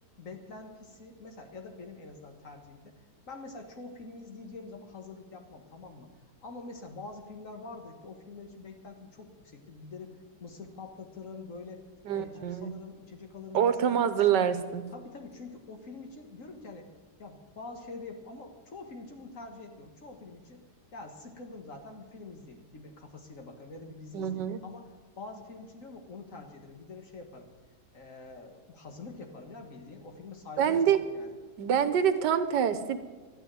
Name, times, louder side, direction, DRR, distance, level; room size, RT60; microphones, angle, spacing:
voice 1, 0.2-3.0 3.3-6.1 6.4-11.9 12.1-14.1 14.9-16.9 17.2-20.6 20.9-24.9 25.2-27.5 27.9-31.3, left 3 dB, 50° left, 3 dB, 2.0 m, -45 dB
voice 2, 12.0-12.7 13.5-14.8 24.1-24.6 30.6-31.0 31.6-33.0, right 8 dB, 85° right, 11 dB, 1.6 m, -26 dB
12.5 x 9.5 x 9.2 m, 1.4 s
omnidirectional pair, 1.8 m